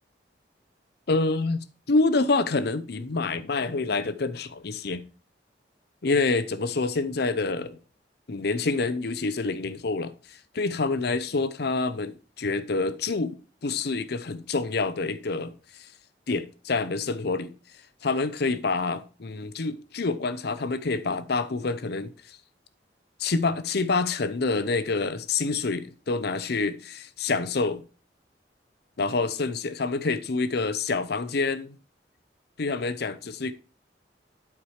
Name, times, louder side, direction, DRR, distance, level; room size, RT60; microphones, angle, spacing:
voice 1, 1.1-5.0 6.0-7.8 8.3-15.5 16.3-17.5 18.0-22.4 23.2-27.8 29.0-31.8 32.6-33.5, left 3 dB, 65° left, 0.7 m, -27 dB
8.6 x 4.7 x 4.8 m
head